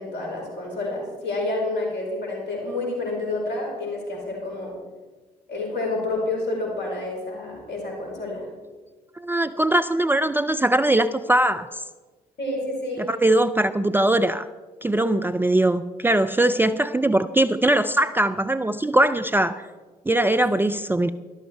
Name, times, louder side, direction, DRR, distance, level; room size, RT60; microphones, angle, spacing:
voice 1, 0.0-4.7 5.5-8.5 12.4-13.1, left 2 dB, 60° left, -1 dB, 4.9 m, -29 dB
voice 2, 9.2-11.8 13.0-14.5 14.8-19.6 20.1-21.1, right 1 dB, 10° right, 10 dB, 0.5 m, -21 dB
13.0 x 12.0 x 4.5 m, 1.3 s
figure-of-eight pair, 40°, 20 cm